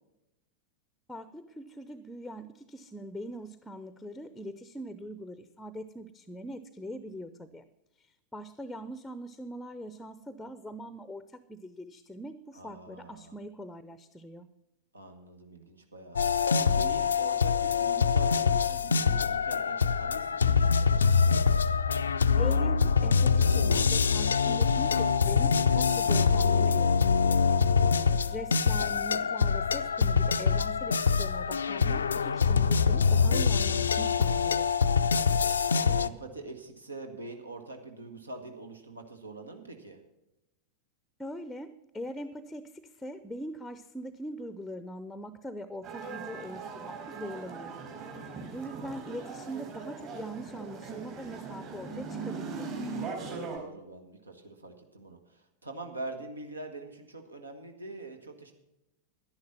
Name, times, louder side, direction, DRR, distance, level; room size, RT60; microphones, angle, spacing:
voice 1, 1.1-7.7 8.0-14.5 22.4-27.7 28.0-34.7 41.2-47.8 48.1-52.7, equal, 5° left, 13 dB, 0.6 m, -42 dB
voice 2, 12.5-13.3 14.9-16.2 16.6-21.4 24.1-24.7 27.8-28.2 35.1-35.5 35.8-40.0 47.9-48.6 53.1-58.5, right 2 dB, 80° right, 6 dB, 1.4 m, -44 dB
sound 1, 16.2-36.1, left 5 dB, 70° left, 0.4 m, -25 dB
sound 2, 45.8-53.6, right 4 dB, 45° right, 4.7 m, -40 dB
11.5 x 10.5 x 5.8 m, 0.90 s
figure-of-eight pair, 90°, 0 cm